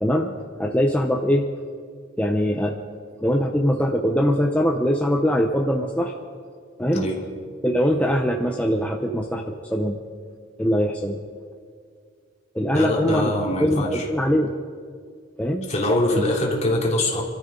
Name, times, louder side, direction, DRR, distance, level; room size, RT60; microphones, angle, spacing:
voice 1, 0.0-1.5 2.2-2.7 3.2-6.1 6.8-7.1 7.6-10.0 10.6-11.2 12.5-13.3 13.6-14.5 15.4-15.7 16.1-16.2, equal, 5° left, 1 dB, 0.8 m, -22 dB
voice 2, 12.7-14.0 15.7-17.2, left 1 dB, 40° left, -2 dB, 3.1 m, -23 dB
28.0 x 13.5 x 3.9 m, 2.1 s
head